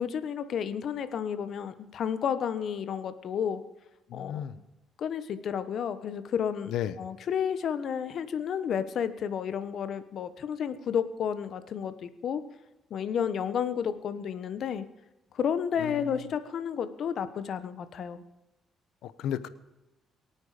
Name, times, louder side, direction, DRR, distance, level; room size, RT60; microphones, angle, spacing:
voice 1, 0.0-3.6 4.1-4.5 5.0-12.4 12.9-14.9 15.3-18.2, left 8 dB, 65° left, 12 dB, 1.2 m, -31 dB
voice 2, 4.1-4.5 6.7-7.0 15.8-16.2 19.0-19.5, left 10 dB, 85° left, 15 dB, 0.8 m, -34 dB
23.5 x 9.0 x 5.1 m, 0.97 s
cardioid pair, 90°, 0 cm